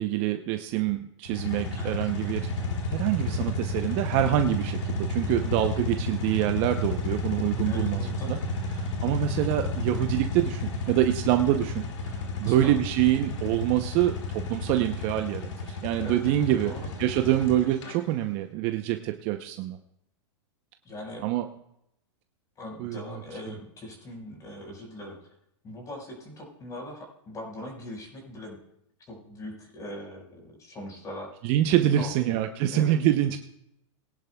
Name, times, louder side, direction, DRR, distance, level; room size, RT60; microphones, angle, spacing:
voice 1, 0.0-2.5 2.9-8.0 8.3-8.4 9.0-16.7 17.0-19.8 21.2-21.5 22.8-23.0 31.4-33.4, right 13 dB, 40° right, 6 dB, 0.7 m, -26 dB
sound 1, 1.3-17.9, left 2 dB, 75° left, 2.6 m, -32 dB
voice 2, 7.7-8.4 12.4-12.7 16.0-16.9 20.8-21.3 22.6-25.2 25.6-28.6 29.1-31.3 32.0-32.3 32.7-33.0, left 1 dB, 20° left, 1 dB, 4.9 m, -41 dB
21.5 x 10.5 x 2.3 m, 0.78 s
hypercardioid pair, 140°, 16 cm